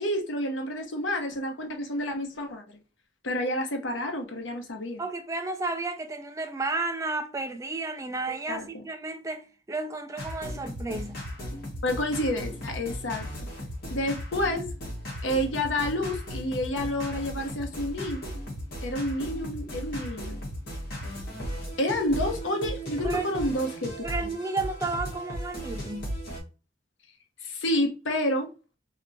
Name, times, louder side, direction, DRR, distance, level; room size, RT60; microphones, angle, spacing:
voice 1, 0.0-2.8 3.2-5.0 8.5-8.8 11.8-13.3 13.9-14.7 15.2-18.2 18.8-20.4 21.8-23.9 24.2-24.3 27.4-28.5, left 1 dB, 80° left, 0.9 m, -29 dB
voice 2, 5.0-11.2 23.0-23.2 24.0-26.1, right 3 dB, 15° right, 0.4 m, -32 dB
sound 1, 10.2-26.4, equal, 50° left, 1.4 m, -36 dB
3.2 x 2.9 x 2.6 m
head